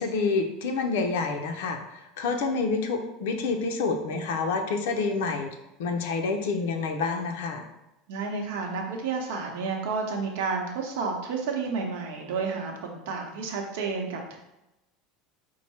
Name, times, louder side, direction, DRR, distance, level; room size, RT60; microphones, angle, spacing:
voice 1, 0.0-7.6, left 4 dB, 75° left, 5 dB, 0.5 m, -28 dB
voice 2, 8.1-14.4, right 4 dB, 70° right, 1 dB, 0.9 m, -31 dB
4.6 x 2.1 x 4.2 m, 0.93 s
supercardioid pair, 180°, 0 cm